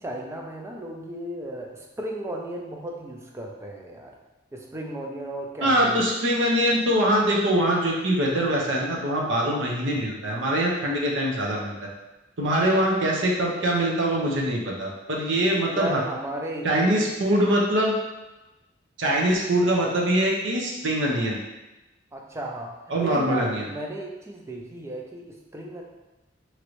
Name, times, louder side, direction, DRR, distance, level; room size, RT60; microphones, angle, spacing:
voice 1, 0.0-4.1 4.5-6.0 15.7-17.3 19.1-19.3 22.1-25.8, right 1 dB, 15° right, 0 dB, 0.3 m, -35 dB
voice 2, 5.6-11.7 12.4-16.0 16.6-17.9 19.0-21.4 22.9-23.6, right 1 dB, 65° right, -2 dB, 0.6 m, -23 dB
3.0 x 2.5 x 3.0 m, 1.1 s
head